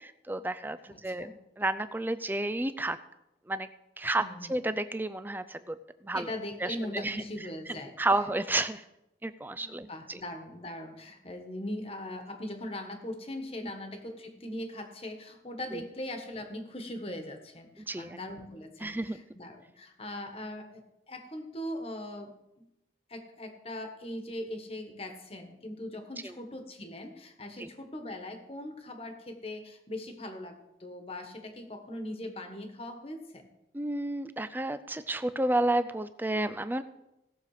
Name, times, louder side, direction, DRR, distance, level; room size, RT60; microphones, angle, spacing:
voice 1, 0.0-1.3 1.6-3.0 3.5-3.7 4.0-4.2 4.5-5.8 6.0-6.3 6.6-7.2 7.7-8.8 9.2-10.2 13.6-13.7 15.7-15.8 17.8-18.2 18.8-19.2 26.2-26.3 27.6-27.7 33.7-36.8, right 2 dB, 10° right, 12 dB, 0.4 m, -31 dB
voice 2, 0.9-1.3 4.2-4.5 6.1-8.0 9.5-22.7 23.1-33.5, left 1 dB, 30° left, 6 dB, 1.4 m, -40 dB
17.5 x 6.8 x 4.9 m, 0.91 s
head